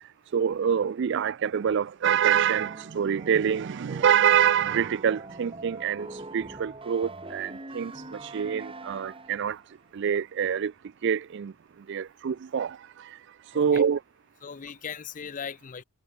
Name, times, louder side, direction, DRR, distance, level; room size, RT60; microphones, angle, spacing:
voice 1, 0.3-9.6 9.9-10.7 11.0-13.2 13.5-14.0, right 8 dB, 55° right, 0.4 m, -26 dB
sound 1, 2.3-9.6, right 2 dB, 25° right, 3.2 m, -43 dB
voice 2, 13.5-13.9 14.4-15.8, left 7 dB, 35° left, 0.5 m, -38 dB
head